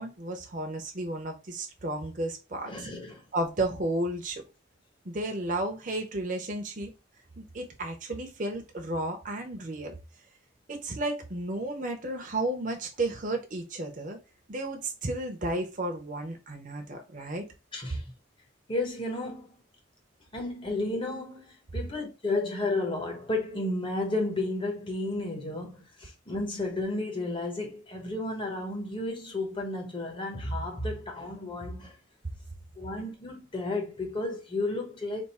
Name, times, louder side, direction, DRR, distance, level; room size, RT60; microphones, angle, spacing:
voice 1, 0.0-2.9 3.3-4.4 5.0-6.9 7.4-9.9 10.7-14.2 14.5-17.5, right 1 dB, 40° right, 0.7 m, -33 dB
voice 2, 2.7-3.2 17.7-18.1 18.7-19.5 20.3-32.0 32.8-35.3, left 2 dB, 25° left, 1.0 m, -32 dB
3.6 x 2.5 x 4.2 m
head